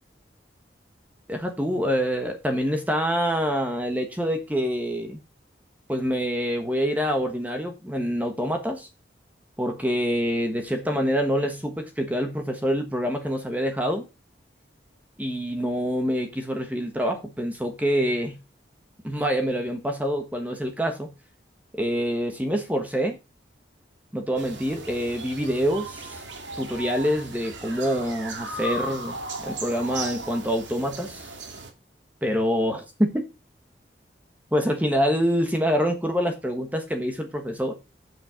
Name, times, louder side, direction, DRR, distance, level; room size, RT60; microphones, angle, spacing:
voice 1, 1.3-5.2 5.9-8.9 9.6-14.0 15.2-18.4 19.0-21.1 21.7-23.2 24.1-26.2 26.6-31.3 32.2-33.3 34.5-37.7, equal, 10° right, 1.3 m, -26 dB
sound 1, 24.4-31.7, right 2 dB, 90° right, 2.1 m, -36 dB
8.0 x 6.2 x 5.7 m
head